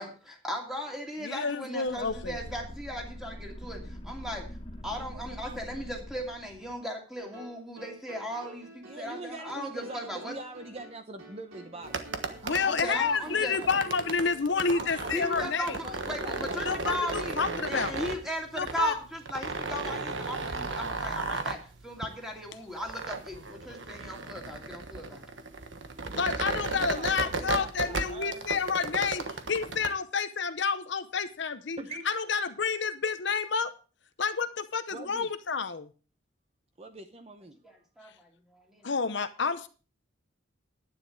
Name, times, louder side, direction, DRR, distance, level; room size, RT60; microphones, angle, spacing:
voice 1, 0.0-4.5 4.8-10.3 12.6-13.6 15.1-17.4 17.7-25.3 38.0-38.8, equal, ahead, 0 dB, 2.7 m, -37 dB
voice 2, 1.2-2.4 12.4-15.8 16.6-17.9 18.5-18.9 26.1-31.8 32.1-33.7 34.2-35.9 38.8-39.7, left 5 dB, 55° left, 10 dB, 0.8 m, -29 dB
sound 1, 1.9-6.8, equal, 25° left, 1.6 m, -43 dB
voice 3, 4.9-5.7 8.8-13.7 14.7-17.5 26.4-28.5 31.8-32.0 34.9-35.3 36.8-37.6, right 2 dB, 30° right, 7 dB, 0.9 m, -44 dB
sound 2, 7.2-16.9, right 1 dB, 85° right, 4.2 m, -49 dB
sound 3, 11.8-29.9, right 3 dB, 60° right, 1.3 m, -35 dB
11.0 x 9.7 x 4.7 m, 0.36 s
head